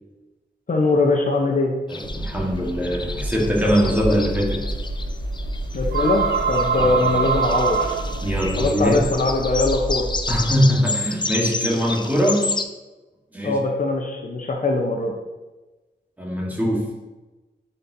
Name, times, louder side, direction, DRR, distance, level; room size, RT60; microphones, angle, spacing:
voice 1, 0.7-1.8 5.7-8.0 8.6-10.1 13.4-15.1, left 3 dB, 45° left, 1 dB, 0.8 m, -21 dB
sound 1, 1.9-12.6, left 3 dB, 25° left, 0.4 m, -31 dB
voice 2, 1.9-4.7 6.8-7.2 8.2-9.0 10.3-12.6 13.3-13.6 16.2-16.9, equal, 10° right, -3 dB, 1.5 m, -22 dB
sound 2, 2.0-10.4, right 1 dB, 60° right, 1.9 m, -30 dB
sound 3, 3.4-9.4, right 6 dB, 80° right, 0.6 m, -25 dB
10.0 x 4.4 x 2.7 m, 1.1 s
wide cardioid pair, 120°, 18 cm